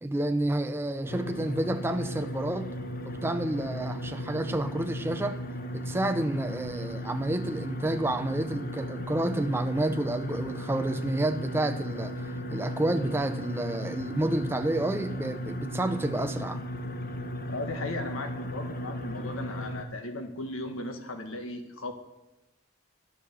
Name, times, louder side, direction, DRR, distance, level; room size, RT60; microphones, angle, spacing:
voice 1, 0.0-2.7 3.0-5.4 5.7-12.1 12.5-16.6, right 1 dB, 10° right, 0.4 m, -29 dB
sound 1, 1.1-19.8, equal, 45° left, 1.0 m, -36 dB
voice 2, 17.5-21.9, left 2 dB, 90° left, 1.5 m, -36 dB
11.5 x 10.0 x 6.8 m
head